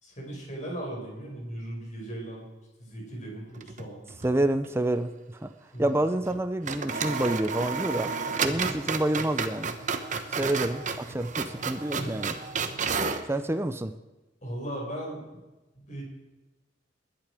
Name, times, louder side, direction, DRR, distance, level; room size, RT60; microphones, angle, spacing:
voice 1, 0.0-2.5 2.8-4.0 5.7-6.0 8.5-8.8 10.1-10.4 11.9-12.1 14.4-15.2 15.7-16.0, right 1 dB, 40° left, -2 dB, 5.7 m, -37 dB
sound 1, 3.5-4.4 4.6-4.7 6.2-6.4 6.6-13.3, right 5 dB, 40° right, 1.0 m, -32 dB
voice 2, 4.2-5.5 5.8-8.1 8.4-9.7 10.4-12.3 13.3-13.9, right 1 dB, 15° right, 9 dB, 0.6 m, -28 dB
20.5 x 10.5 x 5.0 m, 1.1 s
head